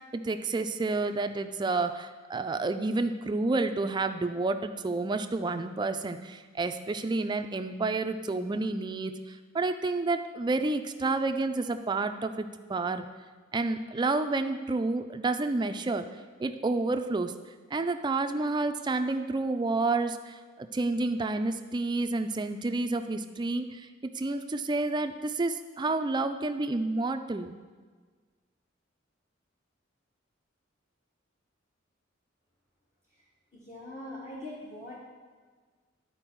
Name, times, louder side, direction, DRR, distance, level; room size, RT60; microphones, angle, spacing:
voice 1, 0.1-13.1 13.5-16.1 16.4-17.3 17.7-23.9 24.1-27.5, right 3 dB, 25° right, 8 dB, 0.4 m, -30 dB
voice 2, 33.5-35.0, left 1 dB, 40° left, -6 dB, 1.2 m, -42 dB
11.5 x 4.4 x 4.6 m, 1.5 s
head